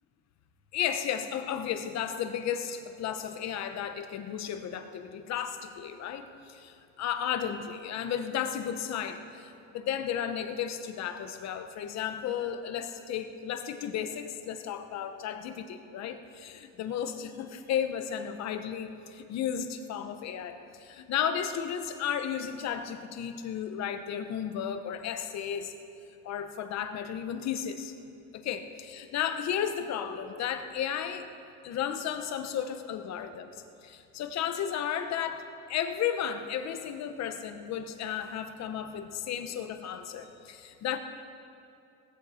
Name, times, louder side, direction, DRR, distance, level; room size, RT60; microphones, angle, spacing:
voice 1, 0.7-25.7 26.2-27.9 28.3-31.2 31.6-35.4 35.7-41.0, left 9 dB, 50° left, 8 dB, 1.0 m, -34 dB
18.0 x 14.5 x 4.3 m, 2.6 s
cardioid pair, 160°, 35 cm